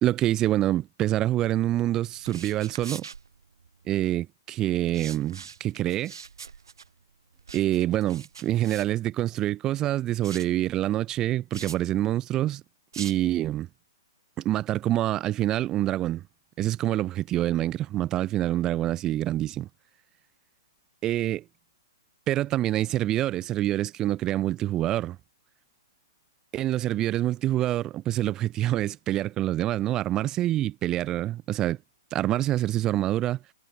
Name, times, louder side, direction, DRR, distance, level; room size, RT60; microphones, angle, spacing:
voice 1, 0.0-3.0 3.9-6.1 7.5-12.6 13.0-13.7 14.4-16.2 16.6-19.7 21.0-21.4 22.3-25.2 26.5-31.8 32.1-33.4, right 13 dB, 25° right, 1.5 m, -26 dB
sound 1, 2.1-3.9 4.8-9.5 10.2-10.6 11.5-11.8 12.9-13.4, right 6 dB, 85° right, 2.7 m, -43 dB
hypercardioid pair, 125°, 2 cm